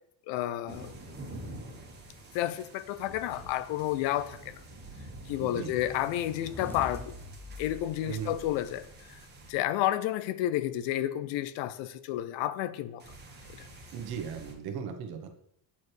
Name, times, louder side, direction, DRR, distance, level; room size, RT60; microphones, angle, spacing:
voice 1, 0.3-0.9 2.3-4.6 5.3-7.2 7.6-9.2 9.5-13.0, left 13 dB, 85° left, 0.6 m, -31 dB
sound 1, 0.7-9.5 13.0-14.5, right 1 dB, 25° right, 1.4 m, -47 dB
voice 2, 5.4-5.8 8.0-8.3 13.9-15.4, right 7 dB, 55° right, 1.1 m, -37 dB
sound 2, 6.1-9.3, left 1 dB, 5° left, 0.4 m, -45 dB
8.4 x 4.5 x 3.2 m
cardioid pair, 140°, 43 cm